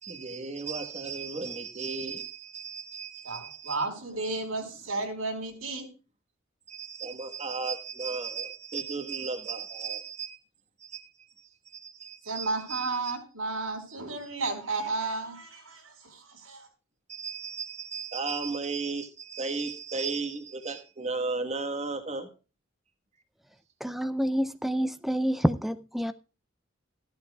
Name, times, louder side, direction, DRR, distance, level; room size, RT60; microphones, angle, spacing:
voice 1, 0.0-3.8 6.7-10.4 10.8-11.1 11.4-13.1 17.1-22.3, right 4 dB, 35° right, 1.3 m, -35 dB
voice 2, 3.2-5.9 12.2-16.7, right 3 dB, 90° right, 4.3 m, -33 dB
voice 3, 23.8-26.1, equal, ahead, 0.4 m, -28 dB
15.0 x 11.5 x 2.3 m
head